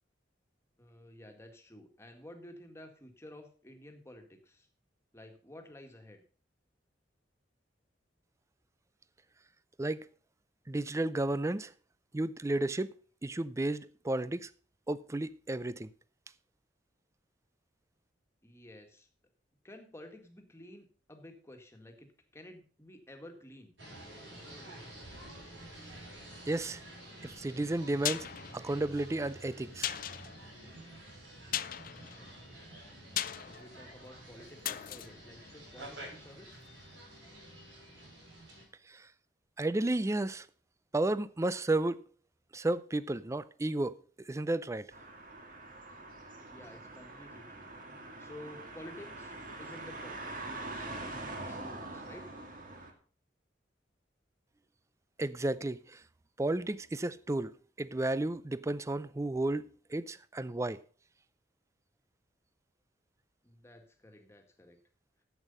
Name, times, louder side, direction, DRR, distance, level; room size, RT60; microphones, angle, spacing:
voice 1, 0.8-4.7 5.1-6.2 18.4-19.1 19.6-23.8 24.5-25.0 31.9-36.6 46.5-50.9 51.2-52.3 63.4-64.8, left 1 dB, 15° left, 1.8 m, -52 dB
voice 2, 10.7-11.7 12.1-12.9 13.2-14.5 14.9-15.9 26.5-26.8 27.2-28.3 28.5-30.0 38.9-39.1 39.6-40.5 40.9-42.0 42.5-44.0 44.3-44.9 55.2-56.0 56.4-60.8, right 2 dB, 15° right, 0.4 m, -33 dB
sound 1, 23.8-38.6, right 1 dB, 80° right, 5.6 m, -50 dB
sound 2, 27.7-36.5 36.8-36.9, left 11 dB, 50° left, 0.5 m, -40 dB
sound 3, 44.9-52.9, right 2 dB, 50° right, 2.1 m, -44 dB
11.0 x 8.2 x 5.4 m
head